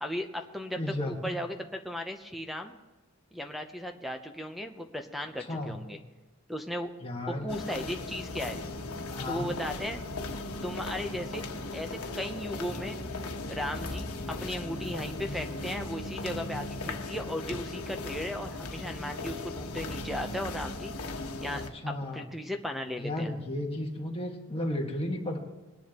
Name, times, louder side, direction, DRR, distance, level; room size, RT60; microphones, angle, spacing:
voice 1, 0.0-2.7 3.3-6.0 6.5-6.9 7.3-8.6 9.3-10.0 10.6-11.4 11.7-13.0 13.5-20.9 21.4-23.3, equal, ahead, 6 dB, 0.7 m, -36 dB
voice 2, 0.8-1.3 5.5-5.7 7.0-7.5 9.1-9.5 21.5-22.3 23.0-25.4, left 1 dB, 25° left, -1 dB, 1.7 m, -34 dB
sound 1, 7.5-21.7, left 2 dB, 85° left, 1.2 m, -37 dB
21.0 x 10.5 x 3.0 m, 1.2 s
head